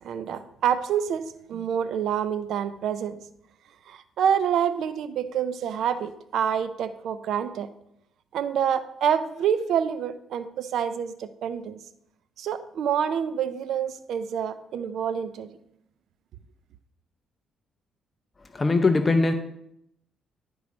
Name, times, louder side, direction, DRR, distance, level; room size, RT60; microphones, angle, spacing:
voice 1, 0.0-3.2 3.9-7.7 8.3-11.8 12.4-15.5, right 8 dB, 75° right, 13 dB, 0.5 m, -27 dB
voice 2, 18.5-19.3, left 3 dB, 25° left, 8 dB, 0.6 m, -21 dB
11.0 x 4.7 x 4.1 m, 0.78 s
cardioid pair, 90°, 0 cm